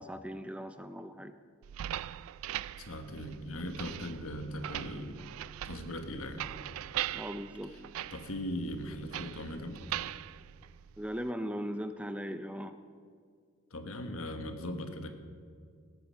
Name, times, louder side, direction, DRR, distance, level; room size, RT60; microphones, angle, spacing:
voice 1, 0.0-1.3 7.1-7.7 11.0-12.8, equal, 5° right, 9 dB, 0.4 m, -38 dB
sound 1, 1.6-11.3, right 12 dB, 85° right, 0.3 m, -41 dB
voice 2, 2.8-5.2 5.6-6.5 7.7-7.8 8.1-9.8 13.7-15.1, left 1 dB, 90° left, 7 dB, 1.4 m, -39 dB
18.5 x 8.9 x 5.6 m, 2.2 s
head